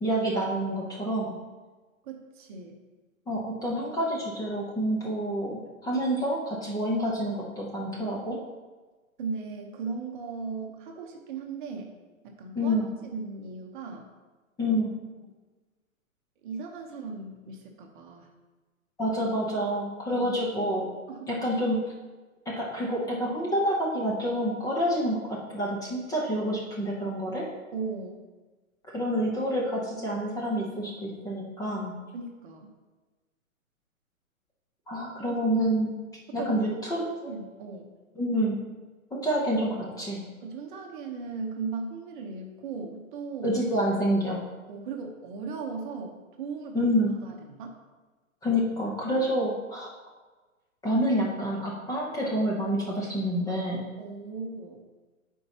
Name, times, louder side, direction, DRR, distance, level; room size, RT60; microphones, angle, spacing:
voice 1, 0.0-1.4 3.3-8.4 12.5-12.9 14.6-14.9 19.0-20.8 21.3-21.8 22.5-27.4 28.9-31.9 34.9-35.9 36.3-37.3 38.2-38.6 39.1-40.2 43.4-44.4 46.7-47.1 48.4-49.9 50.8-53.8, equal, 10° left, -4 dB, 0.8 m, -28 dB
voice 2, 2.0-2.8 9.2-12.0 12.2-14.1 14.7-14.8 16.4-18.3 20.1-20.3 21.1-21.3 27.7-28.2 32.1-32.7 35.2-35.3 36.4-37.9 40.4-43.6 44.7-46.8 47.2-47.8 54.0-54.8, right 4 dB, 35° right, 2 dB, 0.9 m, -37 dB
11.5 x 4.6 x 2.9 m, 1.3 s
hypercardioid pair, 130°, 42 cm